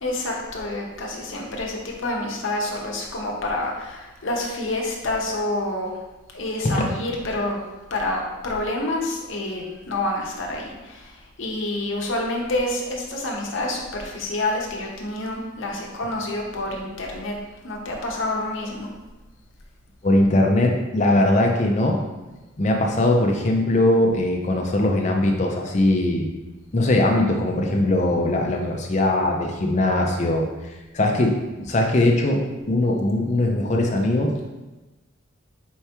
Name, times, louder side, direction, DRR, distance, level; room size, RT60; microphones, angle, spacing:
voice 1, 0.0-5.9 6.3-7.6 7.9-17.3 17.6-18.9, left 2 dB, 65° left, -1 dB, 0.8 m, -28 dB
voice 2, 20.0-22.0 22.6-26.3 26.7-30.5 30.9-34.4, left 1 dB, 35° left, 1 dB, 0.5 m, -20 dB
4.5 x 3.4 x 2.9 m, 1.1 s
head